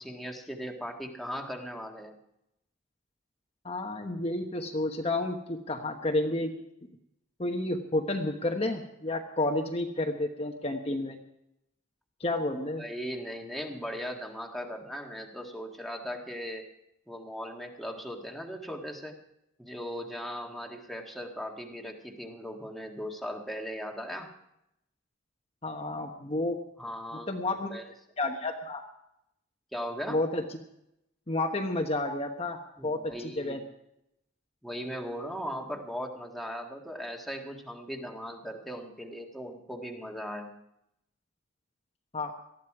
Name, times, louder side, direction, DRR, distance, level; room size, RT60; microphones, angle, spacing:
voice 1, 0.0-2.2 12.8-16.7 17.1-19.2 19.6-24.3 26.8-27.9 29.7-30.2 32.8-33.6 34.6-40.5, equal, ahead, 1 dB, 1.7 m, -38 dB
voice 2, 3.6-6.5 7.4-11.2 12.2-12.8 25.6-26.6 27.3-27.7 28.2-28.8 30.1-30.4 31.3-33.6 42.1-42.3, left 2 dB, 30° left, 2 dB, 1.2 m, -31 dB
19.0 x 14.0 x 4.8 m, 0.80 s
head